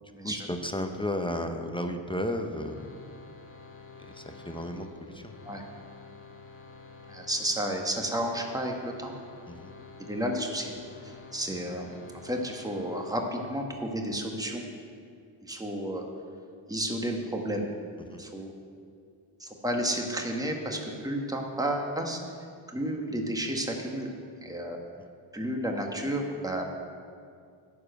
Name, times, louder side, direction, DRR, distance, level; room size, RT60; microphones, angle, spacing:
voice 1, 0.0-2.9 4.0-5.4 9.5-9.7 18.1-18.2 25.0-25.1, left 1 dB, 10° left, 5 dB, 0.9 m, -34 dB
sound 1, 2.5-13.8, left 4 dB, 25° left, 1.3 m, -49 dB
voice 2, 7.1-9.1 10.1-10.7 11.0-14.7 15.4-16.0 16.7-17.7 18.2-18.5 19.4-22.2 22.7-24.1 24.4-24.8 25.3-26.6, right 1 dB, 5° right, 1 dB, 1.6 m, -32 dB
11.0 x 4.9 x 6.7 m, 2.3 s
supercardioid pair, 45°, 50 cm